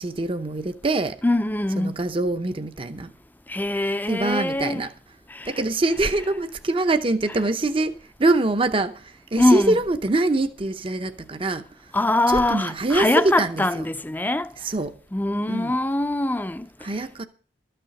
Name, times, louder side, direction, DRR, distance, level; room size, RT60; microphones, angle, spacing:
voice 1, 0.0-1.2 1.8-3.1 4.1-4.9 5.4-11.9 12.3-13.8 14.6-15.0 15.5-15.8 16.8-17.2, right 2 dB, 30° right, 0.7 m, -24 dB
voice 2, 1.2-1.9 3.5-4.8 5.3-5.5 9.4-9.7 11.9-14.5 15.1-16.9, left 1 dB, 10° left, 0.5 m, -23 dB
12.5 x 6.7 x 7.7 m
head